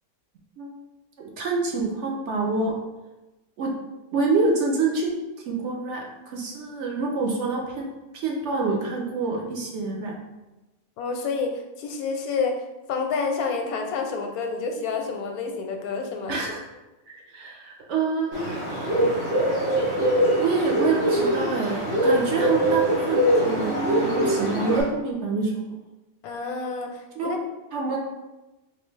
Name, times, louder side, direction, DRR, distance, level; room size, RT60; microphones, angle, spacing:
voice 1, 1.4-2.7 3.6-3.7 4.1-5.1 5.5-7.9 8.1-10.1 16.3-16.6 17.1-18.4 20.4-25.8 27.1-27.3 27.7-28.0, right 3 dB, 65° right, -1 dB, 0.8 m, -26 dB
voice 2, 11.0-12.6 12.9-16.4 26.2-27.4, left 4 dB, 90° left, 3 dB, 1.1 m, -29 dB
Bird, 18.3-24.8, right 1 dB, 45° right, 1.5 m, -23 dB
3.9 x 2.5 x 3.1 m, 1.1 s
omnidirectional pair, 1.5 m